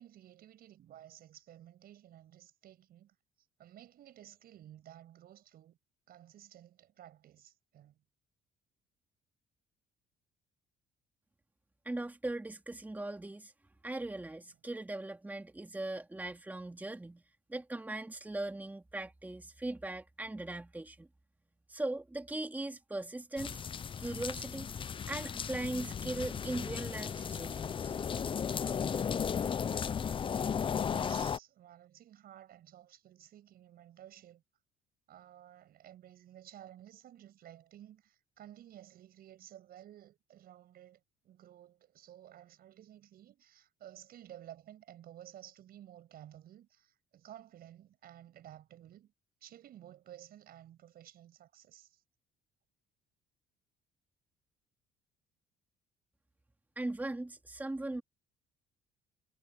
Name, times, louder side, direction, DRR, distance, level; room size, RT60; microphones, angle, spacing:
voice 1, 0.0-3.1 3.6-5.8 6.1-8.0 28.4-28.7 30.8-34.4 35.1-49.1 49.4-52.0, right 11 dB, 65° right, 6.7 m, -54 dB
voice 2, 11.8-13.5 13.8-17.2 17.5-21.1 21.7-23.6 24.0-24.7 25.1-27.9 56.8-58.0, right 2 dB, 10° right, 2.5 m, -39 dB
sound 1, 23.4-31.4, left 7 dB, 30° left, 0.6 m, -35 dB
cardioid pair, 110°, 17 cm